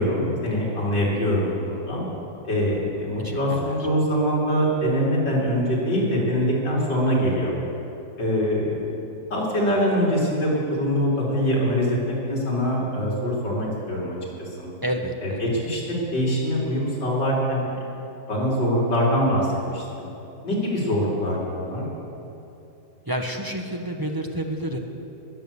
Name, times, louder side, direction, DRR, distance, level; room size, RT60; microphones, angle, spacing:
voice 1, 0.0-2.1 2.4-7.6 8.2-8.8 9.3-14.7 15.2-17.8 18.3-20.1 20.4-21.8, equal, 65° left, -5 dB, 4.4 m, -24 dB
voice 2, 3.2-3.8 14.8-15.4 23.1-24.8, right 1 dB, 20° right, 2 dB, 0.7 m, -29 dB
20.5 x 8.8 x 7.0 m, 2.9 s
omnidirectional pair, 2.0 m